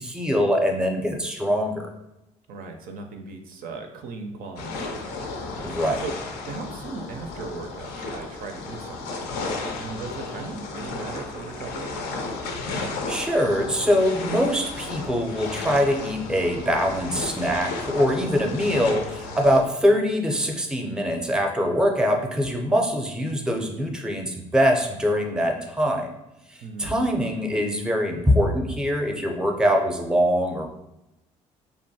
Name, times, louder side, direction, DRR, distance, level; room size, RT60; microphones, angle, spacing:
voice 1, 0.0-1.9 5.6-6.0 13.1-26.1 26.5-30.7, equal, 5° right, 2 dB, 0.5 m, -23 dB
voice 2, 2.5-5.2 5.5-6.2 6.5-9.2 9.8-12.0 26.6-26.9, right 3 dB, 65° right, 5 dB, 0.4 m, -37 dB
sound 1, 4.6-19.6, left 3 dB, 75° left, 0.5 m, -34 dB
2.6 x 2.2 x 2.7 m, 0.90 s
hypercardioid pair, 60°, 16 cm